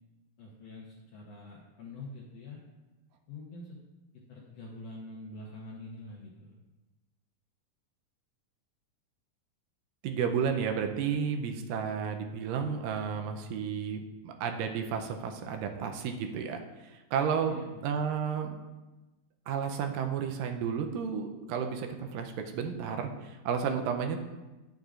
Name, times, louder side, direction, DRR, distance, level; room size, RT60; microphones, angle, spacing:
voice 1, 0.4-2.6 3.3-3.8 4.3-6.5 11.2-11.3 17.5-18.1, left 2 dB, 70° left, -3 dB, 1.6 m, -45 dB
voice 2, 10.0-17.6 17.8-18.6 19.5-24.2, right 7 dB, 90° right, 5 dB, 2.3 m, -32 dB
10.5 x 6.5 x 2.4 m, 1.1 s
omnidirectional pair, 3.9 m